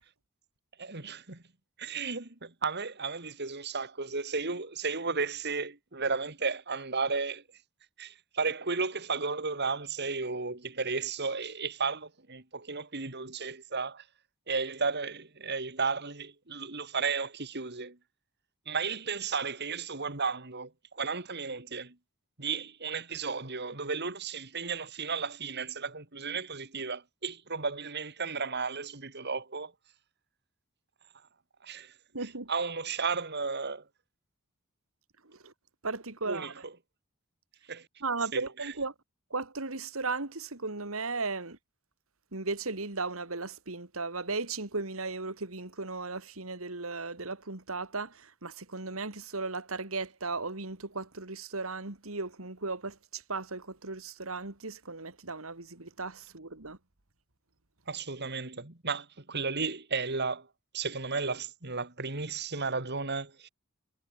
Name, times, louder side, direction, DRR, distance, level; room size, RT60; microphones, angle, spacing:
voice 1, 0.8-1.4 1.8-7.4 8.0-14.0 14.5-18.0 18.7-22.0 22.4-29.7 31.6-31.9 32.5-33.8 36.3-36.7 37.7-37.9 38.3-38.4 57.9-60.5 60.7-63.5, right 4 dB, 50° right, 2.9 m, -34 dB
voice 2, 32.1-32.5 35.2-35.5 35.8-36.6 38.0-38.9 39.3-41.6 42.3-56.8, right 3 dB, 70° right, 2.7 m, -36 dB
head